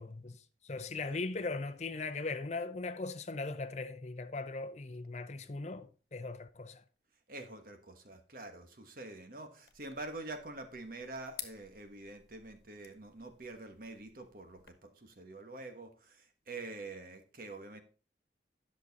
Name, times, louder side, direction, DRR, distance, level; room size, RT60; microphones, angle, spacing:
voice 1, 0.0-6.8, left 3 dB, 40° left, 0.6 m, -39 dB
voice 2, 7.3-17.8, right 2 dB, 50° right, 1.3 m, -46 dB
sound 1, 9.7-14.7, left 11 dB, 60° left, 1.3 m, -53 dB
11.0 x 6.5 x 4.0 m
head